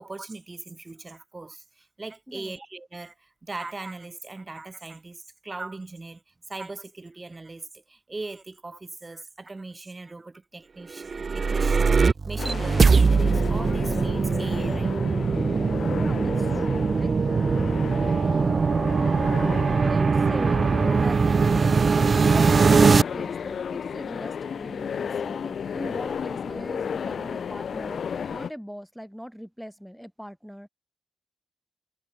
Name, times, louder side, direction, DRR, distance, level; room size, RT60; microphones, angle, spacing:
voice 1, 0.0-12.0 12.3-15.0 15.7-15.9 26.1-26.2, right 3 dB, 25° right, 1.8 m, -40 dB
sound 1, 11.0-23.0, right 5 dB, 45° right, 0.3 m, -21 dB
sound 2, 12.4-28.5, left 7 dB, 65° left, 0.4 m, -34 dB
voice 2, 16.0-17.1 18.4-19.1 19.8-20.6 20.9-21.2 21.9-30.7, equal, ahead, 1.4 m, -40 dB
wide cardioid pair, 115°, 0 cm